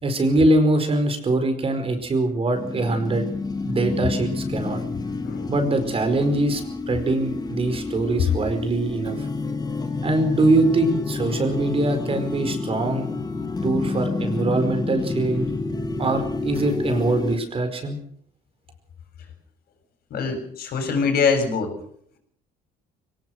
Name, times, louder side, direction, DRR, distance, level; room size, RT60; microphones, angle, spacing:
voice 1, 0.0-3.3 3.6-4.8 5.5-9.3 10.0-13.1 13.6-15.5 16.0-18.0, right 2 dB, 35° right, 7 dB, 4.9 m, -23 dB
sound 1, 2.5-17.4, left 3 dB, 25° left, 2.7 m, -29 dB
voice 2, 20.1-21.7, left 5 dB, 65° left, 6 dB, 7.1 m, -23 dB
22.5 x 19.5 x 6.5 m, 0.66 s
cardioid pair, 110°, 17 cm